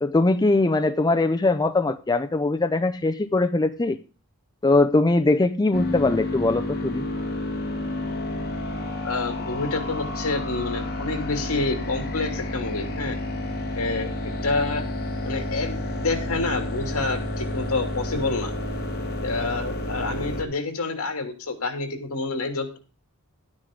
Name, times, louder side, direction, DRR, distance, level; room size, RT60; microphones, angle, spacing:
voice 1, 0.0-4.0 4.6-7.0, left 2 dB, 20° left, 8 dB, 0.5 m, -21 dB
sound 1, 5.7-20.4, left 1 dB, 45° left, 2.3 m, -30 dB
voice 2, 9.0-13.2 13.8-14.8 15.2-18.5 19.2-22.8, left 3 dB, 70° left, 5 dB, 2.8 m, -28 dB
12.5 x 9.8 x 3.8 m, 0.36 s
head